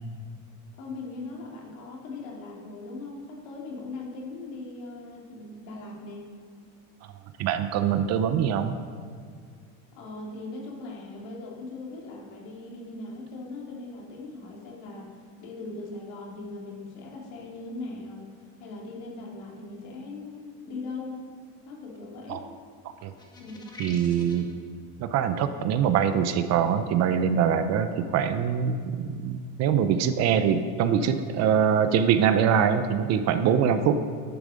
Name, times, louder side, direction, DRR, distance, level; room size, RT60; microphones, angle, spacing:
voice 1, 0.8-6.3 9.9-21.2 21.6-22.5 23.4-23.7, left 3 dB, 65° left, -3 dB, 3.0 m, -40 dB
voice 2, 7.4-8.8 22.3-22.4 23.0-23.1 23.8-24.5 25.0-34.0, right 8 dB, 40° right, 10 dB, 0.6 m, -23 dB
sound 1, 23.2-24.5, left 1 dB, 10° left, 1.9 m, -44 dB
10.5 x 8.6 x 5.1 m, 2.1 s
supercardioid pair, 145°, 39 cm